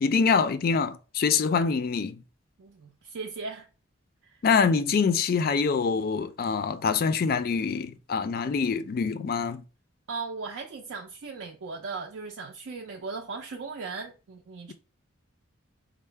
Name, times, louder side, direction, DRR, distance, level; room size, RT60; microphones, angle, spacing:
voice 1, 0.0-2.2 4.4-9.6, left 5 dB, 50° left, 0.3 m, -25 dB
voice 2, 2.6-3.7 4.2-4.4 10.1-14.7, right 4 dB, 75° right, 0.4 m, -37 dB
4.5 x 2.0 x 3.2 m
head